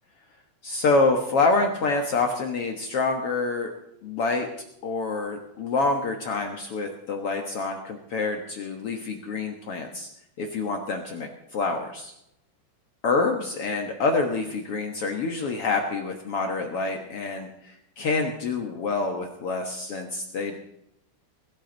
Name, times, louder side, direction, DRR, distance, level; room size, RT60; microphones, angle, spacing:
voice 1, 0.6-3.7 4.0-4.5 4.8-10.1 10.4-12.1 13.0-20.6, left 3 dB, 90° left, 3 dB, 1.2 m, -27 dB
22.0 x 13.0 x 4.0 m, 0.79 s
omnidirectional pair, 4.9 m